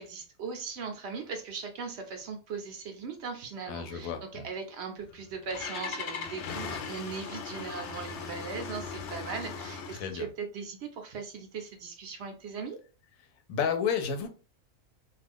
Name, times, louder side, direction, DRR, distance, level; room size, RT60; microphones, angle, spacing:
voice 1, 0.0-12.8, right 5 dB, 65° right, 5 dB, 0.7 m, -39 dB
voice 2, 3.7-4.5 9.9-10.3 13.5-14.3, left 7 dB, 90° left, 7 dB, 1.0 m, -31 dB
Engine starting, 5.0-10.2, left 5 dB, 65° left, 0.8 m, -38 dB
2.4 x 2.3 x 3.4 m, 0.35 s
omnidirectional pair, 1.4 m